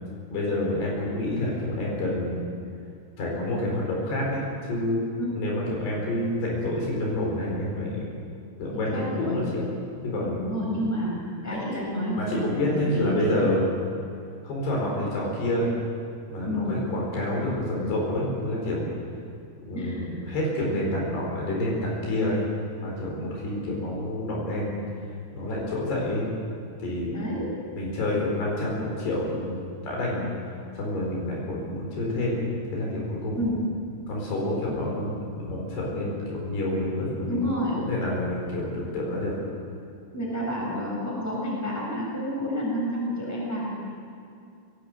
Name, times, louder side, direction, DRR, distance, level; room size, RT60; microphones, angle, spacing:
voice 1, 0.3-2.4 3.2-4.4 4.7-5.1 5.4-8.1 8.6-9.6 10.0-10.4 11.5-11.6 12.2-13.6 14.4-15.7 16.3-18.9 19.6-22.4 22.8-24.8 25.3-26.3 26.8-27.2 27.7-29.6 29.8-30.3 30.7-33.5 34.1-37.4 37.8-39.4, left 1 dB, 60° left, -3 dB, 6.6 m, -28 dB
voice 2, 8.7-9.5 10.4-13.4 16.5-16.8 19.7-20.1 27.1-27.5 33.4-33.7 37.2-37.9 40.1-43.9, equal, 5° left, -3 dB, 5.9 m, -29 dB
22.5 x 18.0 x 8.0 m, 2.4 s
omnidirectional pair, 5.3 m